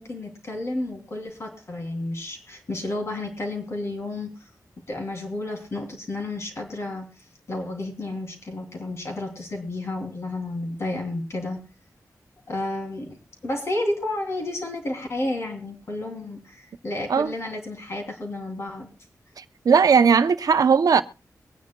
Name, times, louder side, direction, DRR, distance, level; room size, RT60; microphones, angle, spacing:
voice 1, 0.0-4.3 4.9-7.1 7.5-11.6 12.5-13.2 13.4-18.9, left 2 dB, 45° left, 3.0 m, -31 dB
voice 2, 19.4-21.0, right 6 dB, 70° right, 0.7 m, -18 dB
23.0 x 9.5 x 2.3 m
wide cardioid pair, 175°, 7 cm